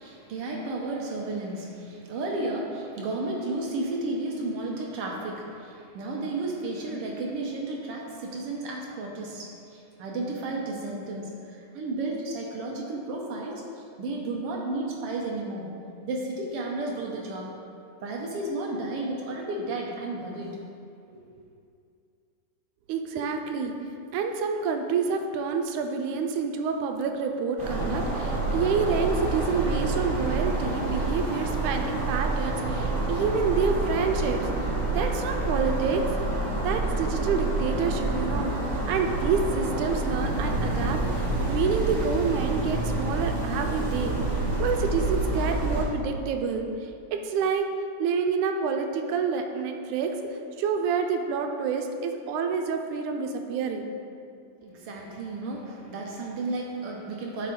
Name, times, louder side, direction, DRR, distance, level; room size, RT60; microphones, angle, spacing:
voice 1, 0.0-15.7 16.0-17.5 18.0-20.6 54.6-57.5, right 2 dB, 65° right, -1 dB, 1.5 m, -33 dB
voice 2, 22.9-23.7 24.1-36.0 36.6-38.5 38.9-44.2 44.6-46.7 47.1-47.7 48.0-53.9, right 5 dB, 90° right, 5 dB, 2.1 m, -28 dB
sound 1, 27.6-45.8, right 2 dB, 35° right, 1.7 m, -28 dB
11.0 x 5.5 x 3.9 m, 2.5 s
omnidirectional pair, 3.4 m